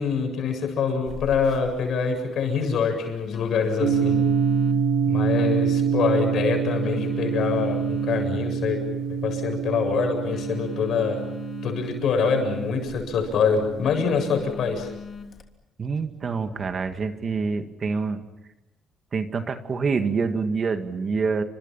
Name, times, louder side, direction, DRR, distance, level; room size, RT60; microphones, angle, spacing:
voice 1, 0.0-4.2 5.1-8.8 9.1-11.2 11.6-14.9, left 5 dB, 70° left, 4 dB, 7.6 m, -25 dB
Telephone, 1.1-15.4, left 5 dB, 50° left, 3.1 m, -42 dB
sound 1, 3.8-14.0, right 7 dB, 85° right, 5.3 m, -26 dB
voice 2, 15.8-18.2 19.1-21.4, right 5 dB, 45° right, 7 dB, 2.1 m, -26 dB
29.5 x 26.0 x 5.8 m, 0.93 s
cardioid pair, 90°, 0 cm